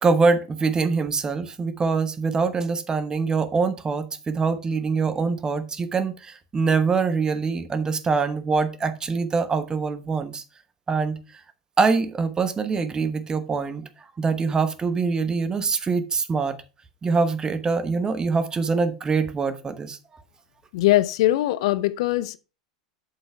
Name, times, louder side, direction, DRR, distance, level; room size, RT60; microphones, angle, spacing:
voice 1, 0.0-10.4 10.9-11.2 11.8-13.9 14.2-16.6 17.0-20.0, right 4 dB, 20° right, 1.0 m, -24 dB
voice 2, 20.7-22.4, left 16 dB, 60° left, 0.5 m, -21 dB
7.5 x 5.9 x 4.5 m
figure-of-eight pair, 85°, 3 cm